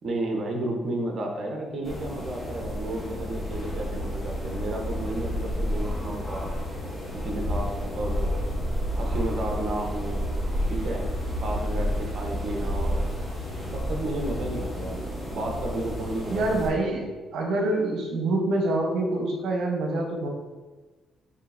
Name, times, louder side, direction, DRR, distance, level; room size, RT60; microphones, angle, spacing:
voice 1, 0.0-6.5 7.1-8.4 8.9-10.2 10.7-11.1 11.4-13.0 13.7-15.0 15.3-17.2, right 1 dB, 50° right, 1 dB, 1.0 m, -32 dB
sound 1, 1.8-16.7, equal, 5° left, 1.5 m, -30 dB
voice 2, 16.3-17.1 17.3-20.3, right 2 dB, 75° right, 1 dB, 1.0 m, -26 dB
5.4 x 3.5 x 2.7 m, 1.2 s
cardioid pair, 90°, 0 cm